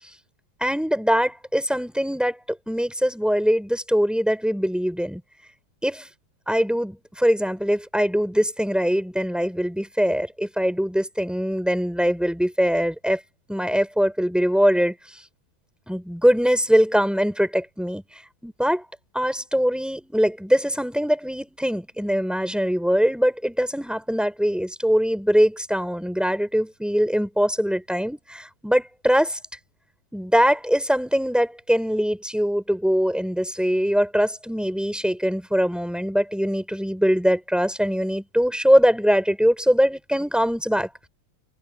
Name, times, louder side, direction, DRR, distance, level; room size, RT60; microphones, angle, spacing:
voice 1, 0.6-2.4 2.7-5.2 5.8-6.1 6.5-13.2 13.5-14.9 15.9-18.0 18.4-18.8 19.1-29.4 30.1-41.1, equal, ahead, 4.3 m, -22 dB
omnidirectional pair, 2.3 m